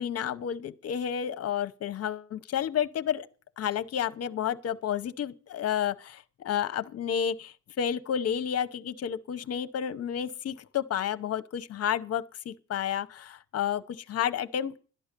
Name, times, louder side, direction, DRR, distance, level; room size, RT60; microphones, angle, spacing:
voice 1, 0.0-3.3 3.6-14.8, left 9 dB, 50° left, 0.9 m, -31 dB
12.5 x 10.0 x 6.7 m
cardioid pair, 145°, 32 cm